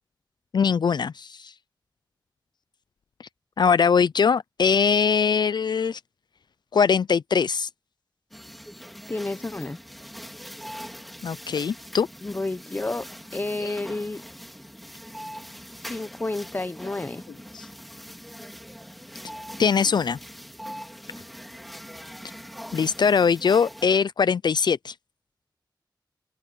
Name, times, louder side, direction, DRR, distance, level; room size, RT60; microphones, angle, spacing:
voice 1, 0.5-1.5 3.6-6.0 6.7-7.7 11.2-12.1 13.6-13.8 17.5-17.7 19.6-20.2 22.7-24.9, left 6 dB, 65° left, 0.4 m, -22 dB
sound 1, 8.3-23.9, equal, ahead, 4.2 m, -42 dB
voice 2, 9.1-9.8 12.2-13.0 13.3-14.2 15.9-17.2, left 2 dB, 25° left, 0.8 m, -30 dB
open air
wide cardioid pair, 105°, 8 cm